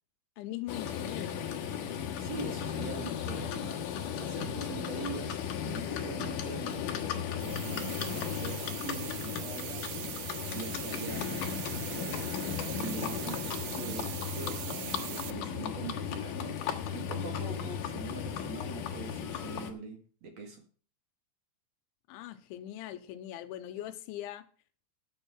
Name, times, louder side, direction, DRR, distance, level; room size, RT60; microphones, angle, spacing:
voice 1, 0.4-1.4 22.1-24.5, left 13 dB, 80° left, 3.0 m, -41 dB
Livestock farm animals working animals, 0.7-19.7, left 8 dB, 65° left, 2.1 m, -36 dB
voice 2, 2.2-3.8 4.2-10.1 10.5-11.4 11.9-20.6, right 4 dB, 45° right, 2.6 m, -43 dB
sound 1, 7.4-15.3, right 16 dB, 90° right, 3.4 m, -41 dB
10.5 x 7.9 x 6.0 m
omnidirectional pair, 5.6 m